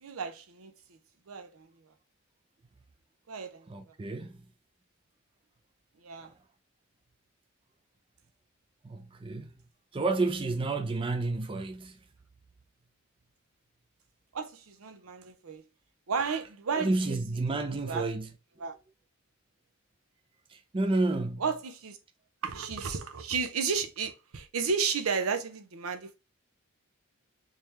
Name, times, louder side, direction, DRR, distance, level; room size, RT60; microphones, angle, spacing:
voice 1, 0.0-0.7 1.3-1.7 3.3-3.7 6.0-6.3 14.3-15.6 16.1-17.2 17.7-18.0 18.6-18.8 21.4-22.0 22.4-26.1, right 5 dB, 90° right, 0.6 m, -33 dB
voice 2, 3.7-4.4 6.2-6.3 8.8-9.5 9.9-12.0 16.8-18.3 20.5-21.4, right 2 dB, 25° right, 0.4 m, -30 dB
3.7 x 2.8 x 3.1 m
head